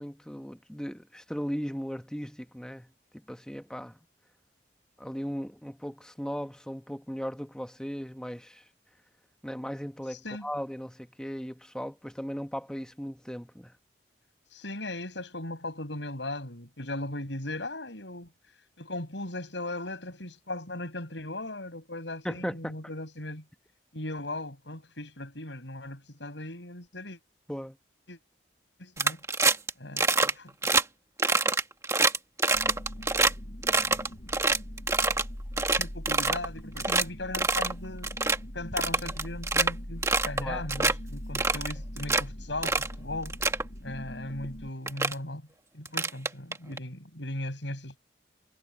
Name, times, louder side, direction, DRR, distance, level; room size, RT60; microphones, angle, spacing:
voice 1, 0.0-4.0 5.0-8.6 9.4-13.8 22.2-22.8 27.5-27.8 40.4-40.7, equal, 5° left, 1.2 m, -37 dB
voice 2, 10.1-10.5 14.5-18.3 18.8-23.4 23.9-27.2 28.1-28.2 28.8-29.2 29.8-30.7 35.8-38.2 38.5-43.4 43.8-45.5 45.7-48.0, left 2 dB, 75° left, 6.6 m, -38 dB
sound 1, 29.0-29.7 30.0-30.3 30.6-30.8 31.2-33.3 33.6-35.2 35.6-36.5 36.8-37.0 37.3-37.7 38.0-38.4 38.8-39.7 40.0-40.4 40.7-40.9 41.3-42.2 42.6-42.9 43.2-43.6 44.4-44.5 44.9-45.1 45.8-46.8, right 3 dB, 15° right, 1.6 m, -25 dB
sound 2, 32.5-44.7, equal, 45° left, 4.5 m, -41 dB
head